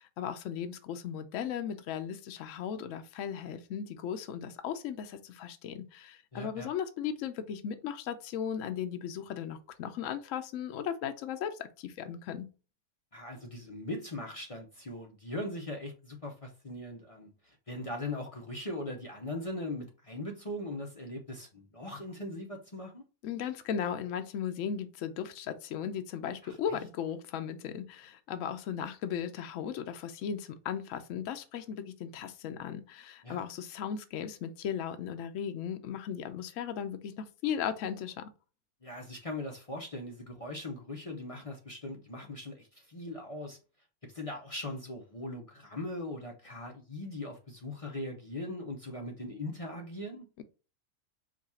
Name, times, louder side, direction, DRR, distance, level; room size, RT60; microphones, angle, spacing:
voice 1, 0.0-12.5 23.2-38.3 50.4-50.5, left 8 dB, 65° left, 0.9 m, -37 dB
voice 2, 6.3-6.7 13.1-23.0 26.4-26.6 33.2-33.4 38.8-43.6 44.1-50.3, left 1 dB, 35° left, 0.5 m, -40 dB
4.9 x 2.3 x 4.1 m
omnidirectional pair, 1.6 m